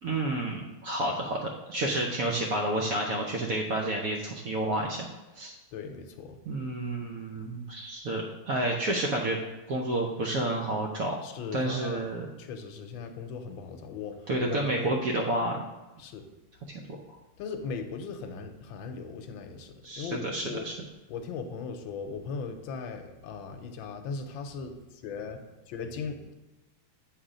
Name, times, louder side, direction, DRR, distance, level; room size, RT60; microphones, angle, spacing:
voice 1, 0.0-5.1 5.3-5.5 6.5-9.4 9.7-11.2 11.5-12.3 14.3-15.6 16.9-17.0 19.8-20.7, right 1 dB, 65° right, 0 dB, 0.9 m, -30 dB
voice 2, 5.7-6.4 11.2-12.1 12.4-15.0 16.0-16.3 17.4-20.7 21.1-24.7 25.0-26.3, left 5 dB, 80° left, 6 dB, 1.4 m, -38 dB
7.6 x 3.3 x 4.9 m, 1.1 s
omnidirectional pair, 2.2 m